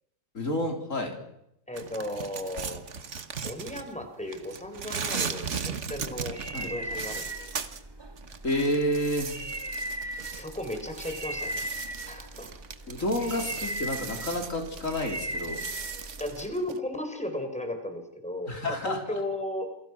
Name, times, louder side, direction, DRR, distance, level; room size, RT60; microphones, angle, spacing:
voice 1, 0.3-1.1 6.5-6.7 8.4-9.3 12.9-15.6 18.5-19.2, left 1 dB, 70° left, 3 dB, 4.4 m, -29 dB
voice 2, 1.7-7.3 10.2-11.6 12.1-12.5 13.0-13.1 16.2-19.7, left 1 dB, 5° left, 5 dB, 4.3 m, -35 dB
sound 1, 1.7-4.1 4.3-7.8 8.2-16.8, right 6 dB, 60° right, 1.7 m, -38 dB
sound 2, 5.9-16.5, right 1 dB, 20° right, 1.8 m, -38 dB
28.0 x 24.0 x 6.1 m, 0.79 s
omnidirectional pair, 1.4 m